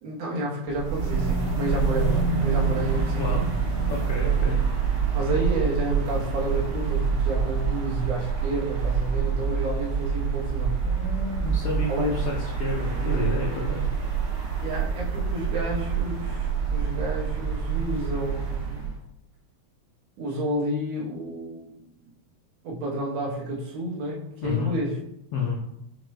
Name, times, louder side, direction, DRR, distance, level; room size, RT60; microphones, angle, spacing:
voice 1, 0.0-3.4 5.1-10.8 11.9-12.1 13.0-13.2 14.6-18.9 20.2-21.9 22.6-25.0, right 1 dB, 70° right, -3 dB, 1.9 m, -30 dB
sound 1, 0.7-19.0, right 6 dB, 85° right, 2.3 m, -26 dB
voice 2, 3.9-4.6 10.8-13.8 24.4-24.8 25.3-25.6, left 4 dB, 90° left, -1 dB, 1.3 m, -30 dB
6.0 x 2.2 x 3.1 m, 0.80 s
omnidirectional pair, 3.3 m